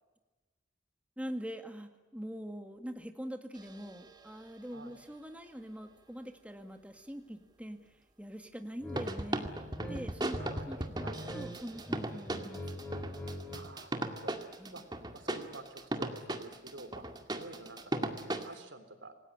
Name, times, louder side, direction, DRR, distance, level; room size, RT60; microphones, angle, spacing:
voice 1, 1.2-9.5 9.9-10.4 10.7-11.1 11.3-12.8 14.6-14.8, equal, 5° right, 6 dB, 1.8 m, -43 dB
sound 1, 3.6-4.6 9.0-18.5, right 1 dB, 25° right, 2.1 m, -38 dB
sound 2, 8.8-9.0 9.4-10.5 10.8-11.5 11.7-13.6, equal, 10° left, 7.4 m, -42 dB
voice 2, 10.4-11.3 13.5-14.3 14.7-14.8 15.1-17.0 17.3-19.1, right 2 dB, 90° right, 9 dB, 3.6 m, -49 dB
27.0 x 19.0 x 9.9 m, 1.1 s
head